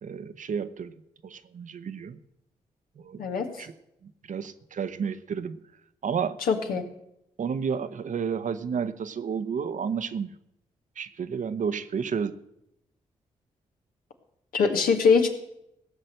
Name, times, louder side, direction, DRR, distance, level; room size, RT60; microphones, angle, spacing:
voice 1, 0.0-0.9 1.2-2.2 3.0-3.7 4.0-5.6 6.0-6.4 6.7-6.8 7.4-10.3 11.0-12.3, right 6 dB, 60° right, 11 dB, 0.9 m, -31 dB
voice 2, 3.2-3.7 6.5-6.8 14.5-15.3, left 5 dB, 75° left, 3 dB, 1.9 m, -22 dB
16.5 x 6.5 x 7.8 m, 0.82 s
hypercardioid pair, 40°, 15 cm